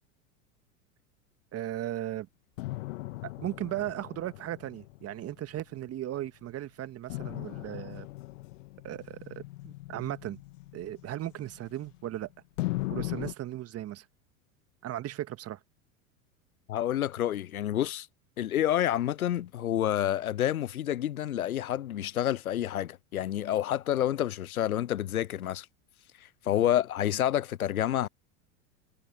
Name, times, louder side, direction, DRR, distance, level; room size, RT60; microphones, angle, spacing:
voice 1, 1.5-2.3 3.2-8.1 8.8-10.4 10.7-12.3 12.9-14.1 14.8-15.6 26.6-26.7, right 13 dB, 35° right, 1.9 m, -37 dB
sound 1, 2.6-6.2 7.1-12.1 12.6-13.3, left 19 dB, 65° left, 1.7 m, -39 dB
voice 2, 16.7-18.1 18.4-25.7 26.2-28.1, left 11 dB, 85° left, 0.7 m, -29 dB
hypercardioid pair, 85°, 42 cm